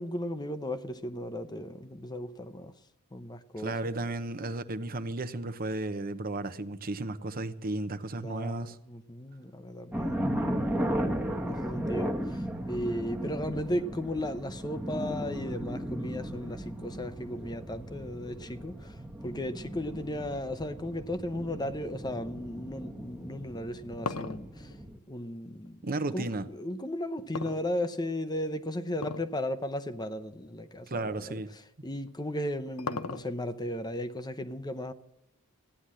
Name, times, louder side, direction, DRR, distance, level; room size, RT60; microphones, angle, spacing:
voice 1, 0.0-2.7 3.1-4.3 8.2-24.8 25.1-25.8 26.1-34.9, left 1 dB, 20° left, 0.7 m, -36 dB
voice 2, 3.6-8.8 25.8-26.5 30.9-31.5, right 2 dB, 40° right, 0.9 m, -34 dB
sound 1, 9.9-25.0, equal, 10° right, 1.1 m, -36 dB
sound 2, 23.5-26.0 27.3-28.2 28.9-29.4 29.7-29.8 30.6-30.7 32.1-33.6, left 4 dB, 80° left, 0.9 m, -37 dB
15.0 x 10.0 x 7.6 m
head